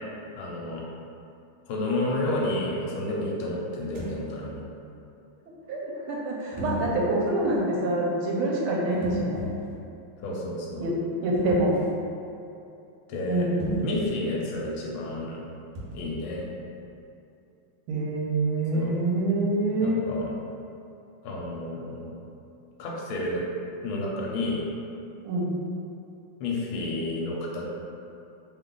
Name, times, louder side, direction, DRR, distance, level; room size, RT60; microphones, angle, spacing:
voice 1, 0.3-0.8 1.7-4.6 10.2-10.9 13.1-13.5 13.8-15.4 15.9-16.5 18.7-18.9 19.8-20.3 21.2-22.1 22.8-23.4 23.8-24.6 26.4-27.7, left 2 dB, 75° left, -3 dB, 1.4 m, -30 dB
sound 1, 3.8-4.2 6.5-7.1 8.9-9.8 11.3-11.9 13.6-14.0 15.7-16.2, right 1 dB, 70° right, 1.2 m, -34 dB
voice 2, 5.7-9.5 10.8-10.9 11.2-11.8 13.3-13.6 17.9-20.0 25.2-25.5, right 1 dB, 85° right, -3 dB, 1.5 m, -26 dB
3.4 x 2.3 x 3.7 m, 2.7 s
omnidirectional pair, 2.4 m